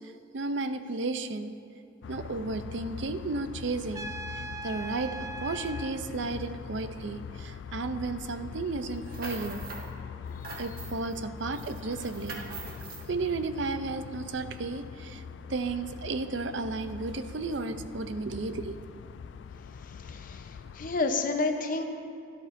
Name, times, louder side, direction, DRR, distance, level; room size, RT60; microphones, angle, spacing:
voice 1, 0.3-1.5 2.1-4.1 4.6-9.6 10.6-12.4 13.1-15.2 15.5-18.8, right 3 dB, 75° right, 10 dB, 0.6 m, -33 dB
sound 1, 2.0-21.0, left 6 dB, 70° left, 0.3 m, -43 dB
Trumpet, 3.9-6.0, right 2 dB, 15° right, 0.3 m, -39 dB
sound 2, 8.9-9.9 10.2-11.2 11.5-13.1, right 3 dB, 50° right, 1.5 m, -43 dB
voice 2, 19.7-21.8, left 3 dB, 45° left, 5 dB, 0.8 m, -30 dB
16.5 x 11.0 x 2.6 m, 2.6 s
head